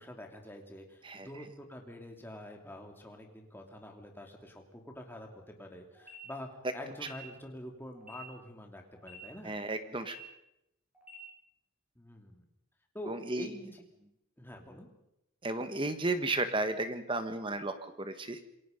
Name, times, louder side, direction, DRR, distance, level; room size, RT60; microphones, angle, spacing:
voice 1, 0.0-9.6 12.0-12.4 12.9-13.8 14.4-14.9, left 1 dB, 10° left, 2 dB, 2.8 m, -46 dB
sound 1, 5.9-6.2 6.9-7.1 7.9-8.2 8.9-9.1 9.9-10.2 10.9-11.1, left 3 dB, 5° right, 6.8 m, -52 dB
voice 2, 9.4-10.2 13.1-13.5 15.4-18.4, right 2 dB, 25° right, 9 dB, 1.5 m, -33 dB
27.5 x 22.0 x 5.3 m, 0.84 s
head